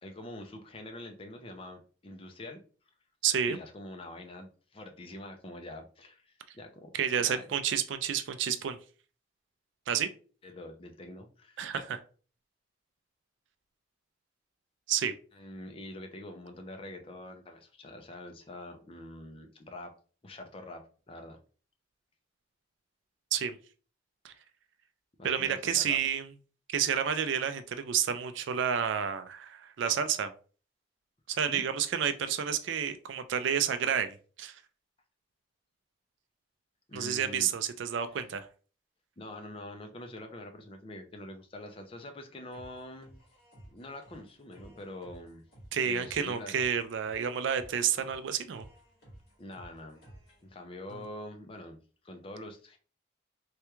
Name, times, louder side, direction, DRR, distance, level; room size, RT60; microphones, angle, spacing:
voice 1, 0.0-2.6 3.5-7.5 10.4-11.8 15.3-19.9 20.2-20.8 21.1-21.4 25.2-26.0 31.5-31.7 36.9-37.5 38.0-38.1 39.2-43.2 43.7-45.4 45.8-46.6 49.4-50.0 50.4-51.8 52.0-52.8, left 1 dB, 30° left, 0.5 m, -45 dB
voice 2, 3.2-3.6 6.9-8.8 9.9-10.1 11.6-11.8 14.9-15.1 23.3-23.6 24.2-24.3 25.2-26.3 26.7-30.3 31.3-34.6 36.9-38.5 45.7-48.7, right 8 dB, 75° right, 0.4 m, -30 dB
sound 1, 42.5-50.5, right 1 dB, 55° left, 1.7 m, -55 dB
3.3 x 2.3 x 3.0 m
head